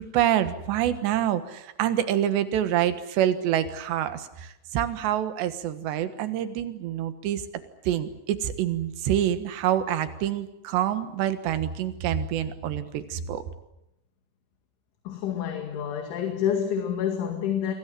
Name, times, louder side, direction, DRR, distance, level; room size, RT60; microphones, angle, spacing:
voice 1, 0.0-7.4 7.9-13.4, right 11 dB, 70° right, 10 dB, 3.5 m, -26 dB
voice 2, 15.1-17.7, left 8 dB, 75° left, 4 dB, 4.5 m, -28 dB
27.5 x 23.5 x 7.7 m, 0.85 s
omnidirectional pair, 5.5 m